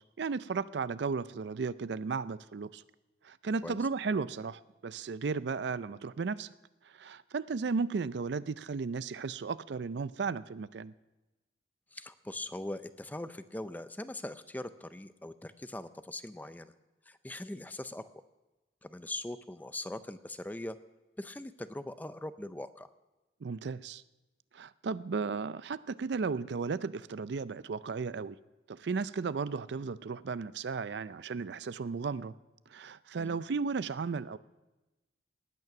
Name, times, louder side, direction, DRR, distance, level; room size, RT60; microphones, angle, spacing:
voice 1, 0.2-2.8 3.2-6.5 6.8-10.9 23.4-24.0 24.5-28.4 28.7-32.3 32.7-34.4, right 5 dB, 70° right, 16 dB, 0.4 m, -35 dB
voice 2, 11.9-16.7 17.1-18.1 18.8-20.8 21.2-22.9 33.2-33.4, left 1 dB, 10° left, 12 dB, 0.4 m, -41 dB
18.5 x 9.3 x 5.9 m, 1.1 s
head